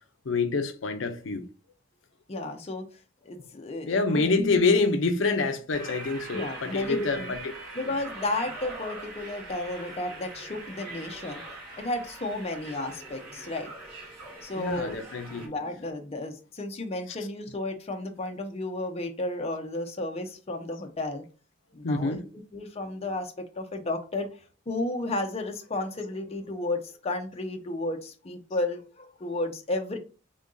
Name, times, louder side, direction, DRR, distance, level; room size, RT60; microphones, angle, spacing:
voice 1, 0.3-1.5 3.8-7.5 14.6-15.5 21.8-22.3, left 3 dB, 85° left, 0.6 m, -26 dB
voice 2, 2.3-2.8 3.2-4.6 6.3-7.3 7.7-11.4 11.8-13.7 14.4-15.0 15.4-21.2 21.7-22.2 22.5-24.3 24.7-30.0, left 2 dB, 35° left, 0.6 m, -33 dB
sound 1, 5.7-15.5, right 2 dB, 55° right, 1.9 m, -42 dB
3.7 x 2.6 x 3.7 m
head